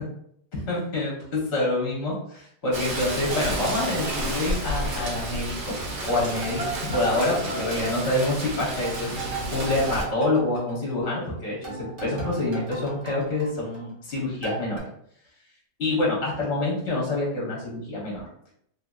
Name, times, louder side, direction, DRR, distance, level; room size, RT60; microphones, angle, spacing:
voice 1, 0.5-5.8 6.0-14.9 15.8-18.3, left 2 dB, 50° left, -4 dB, 1.0 m, -27 dB
Rain, 2.7-10.0, right 1 dB, 75° right, 1.3 m, -31 dB
sound 1, 3.3-5.7 6.1-11.3 11.6-14.1 14.4-14.8, right 2 dB, 50° right, 0.7 m, -37 dB
3.0 x 2.6 x 2.2 m, 0.70 s
omnidirectional pair, 1.7 m